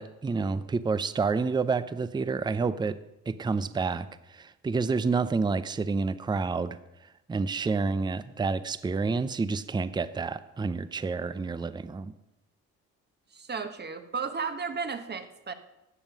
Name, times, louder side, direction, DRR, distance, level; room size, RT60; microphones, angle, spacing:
voice 1, 0.0-3.0 3.3-6.8 7.3-12.1, right 4 dB, 15° right, 15 dB, 0.5 m, -29 dB
voice 2, 13.3-15.5, right 5 dB, 35° right, 9 dB, 1.0 m, -34 dB
12.5 x 7.3 x 6.0 m, 0.94 s
cardioid pair, 90°, 30 cm